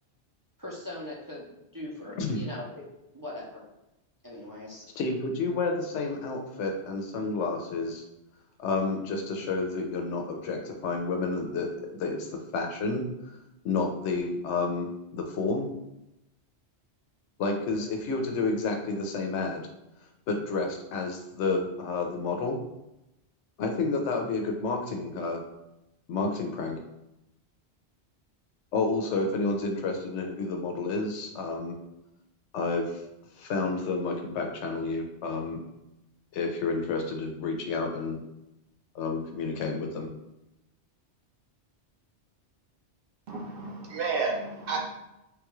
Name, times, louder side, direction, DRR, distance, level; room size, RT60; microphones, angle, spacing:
voice 1, 0.6-2.8 3.1-3.6 4.2-4.8, left 1 dB, 25° right, -6 dB, 0.5 m, -40 dB
voice 2, 5.0-8.0 8.6-13.3 13.6-15.7 17.4-19.6 20.3-22.6 23.6-25.4 26.1-26.8 28.7-31.7 32.5-33.0 33.4-35.6 36.3-38.2 38.9-40.1, left 3 dB, 85° left, 2 dB, 0.9 m, -30 dB
voice 3, 43.3-44.8, right 4 dB, 60° right, -1 dB, 0.7 m, -31 dB
3.6 x 2.3 x 3.0 m, 0.90 s
omnidirectional pair, 1.2 m